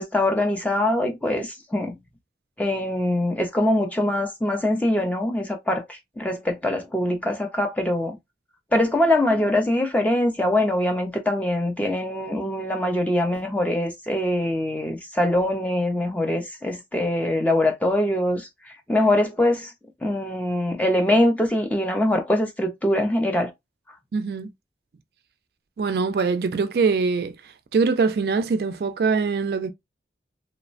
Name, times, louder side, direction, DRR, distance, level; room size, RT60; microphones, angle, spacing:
voice 1, 0.0-2.0 2.6-8.2 8.7-19.7 20.0-23.5, left 1 dB, 10° left, 0.4 m, -23 dB
voice 2, 24.1-24.5 25.8-27.4 27.7-29.7, right 4 dB, 60° right, 0.3 m, -23 dB
3.0 x 2.1 x 2.4 m
head